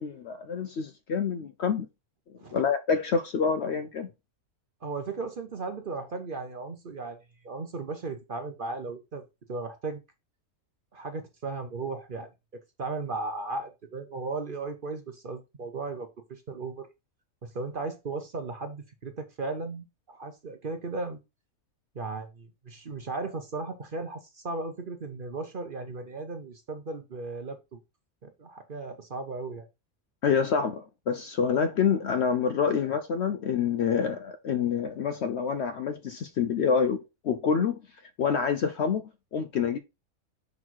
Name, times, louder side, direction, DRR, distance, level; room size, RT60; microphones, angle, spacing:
voice 1, 0.0-1.9 2.5-4.1 30.2-37.8 38.2-39.8, left 6 dB, 65° left, 0.7 m, -27 dB
voice 2, 4.8-7.2 7.4-9.2 9.5-10.0 10.9-12.3 12.8-16.9 17.4-21.2 21.9-27.8 28.2-29.7, right 3 dB, 45° right, 0.8 m, -36 dB
6.1 x 4.0 x 4.5 m
omnidirectional pair, 1.5 m